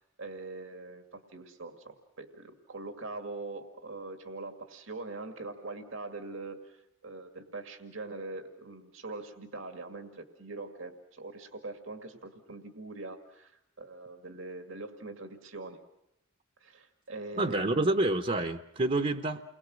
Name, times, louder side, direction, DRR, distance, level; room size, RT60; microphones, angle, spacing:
voice 1, 0.0-15.8 16.6-18.0, right 3 dB, 85° right, 5 dB, 2.2 m, -43 dB
voice 2, 17.4-19.4, right 2 dB, 35° right, 7 dB, 0.9 m, -28 dB
29.5 x 22.0 x 6.3 m, 0.82 s
head